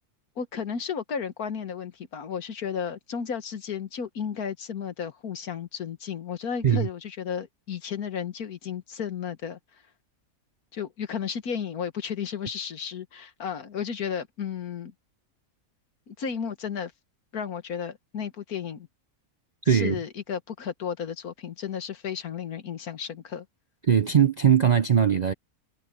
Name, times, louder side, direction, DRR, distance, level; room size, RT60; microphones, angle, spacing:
voice 1, 0.4-9.6 10.7-14.9 16.1-16.9 17.3-18.9 19.7-23.5, left 7 dB, 90° left, 1.9 m, -33 dB
voice 2, 23.9-25.3, right 8 dB, 60° right, 0.4 m, -20 dB
omnidirectional pair, 1.5 m